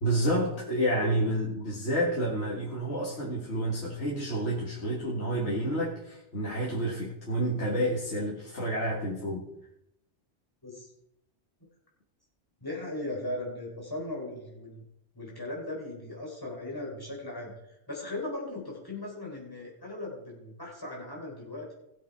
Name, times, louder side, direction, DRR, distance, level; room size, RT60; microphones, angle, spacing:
voice 1, 0.0-9.4, right 1 dB, 70° left, -4 dB, 2.2 m, -29 dB
voice 2, 12.6-14.8 15.2-21.7, left 1 dB, 20° left, -3 dB, 4.0 m, -38 dB
17.0 x 7.5 x 4.7 m, 0.81 s
omnidirectional pair, 1.2 m